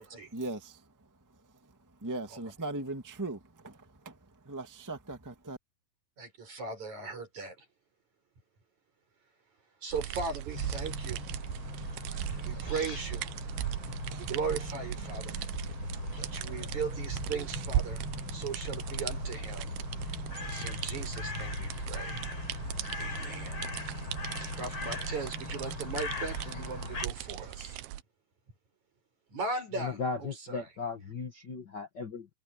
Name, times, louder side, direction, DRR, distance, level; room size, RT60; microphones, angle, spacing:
voice 1, 0.3-5.6, right 2 dB, 20° right, 0.5 m, -40 dB
voice 2, 6.2-7.6 9.8-11.3 12.1-13.3 14.1-15.4 16.2-18.0 18.3-19.7 20.0-22.3 23.0-23.6 24.6-27.8 29.3-30.7, right 4 dB, 50° right, 8.2 m, -38 dB
sound 1, 9.9-28.0, right 13 dB, 80° right, 2.7 m, -38 dB
sound 2, 10.5-27.1, left 2 dB, 30° left, 5.6 m, -39 dB
voice 3, 29.8-32.3, left 4 dB, 85° left, 0.9 m, -36 dB
omnidirectional pair, 4.3 m